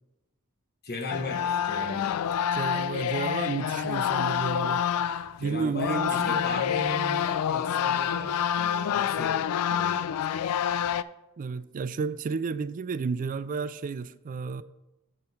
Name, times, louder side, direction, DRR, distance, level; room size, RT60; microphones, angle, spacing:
voice 1, 0.8-2.3 5.4-9.4 9.7-10.5, left 2 dB, 45° left, 4 dB, 1.0 m, -37 dB
sound 1, 1.1-5.4 5.7-11.0, left 9 dB, 75° left, 0.3 m, -27 dB
voice 2, 2.5-4.9 5.4-6.4 11.4-14.6, right 5 dB, 40° right, 15 dB, 0.3 m, -32 dB
7.6 x 4.5 x 5.4 m, 0.97 s
head